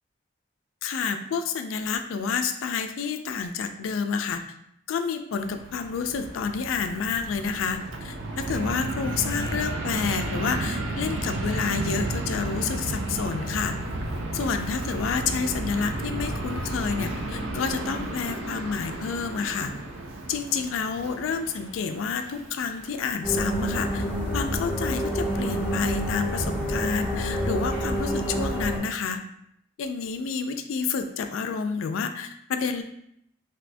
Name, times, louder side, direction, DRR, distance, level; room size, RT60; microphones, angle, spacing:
voice 1, 0.8-4.4 4.9-13.8 14.3-19.7 20.3-24.1 24.3-29.2 29.8-32.8, left 5 dB, 90° left, 7 dB, 0.3 m, -29 dB
Fixed-wing aircraft airplane, 5.3-23.1, right 2 dB, 75° right, 0.5 m, -33 dB
sound 1, 23.2-28.8, equal, 5° left, 1.1 m, -28 dB
2.8 x 2.5 x 3.3 m, 0.75 s
head